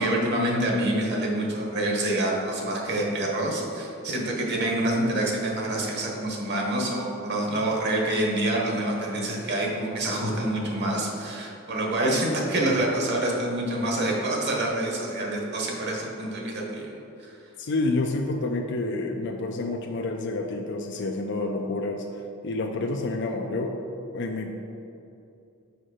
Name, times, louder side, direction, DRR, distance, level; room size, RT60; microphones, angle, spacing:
voice 1, 0.0-16.9 17.2-17.3, right 1 dB, 55° right, -1 dB, 1.3 m, -26 dB
voice 2, 17.6-22.0 22.4-23.8 24.1-24.5, left 2 dB, 55° left, 3 dB, 0.5 m, -28 dB
5.8 x 5.4 x 4.9 m, 2.7 s
head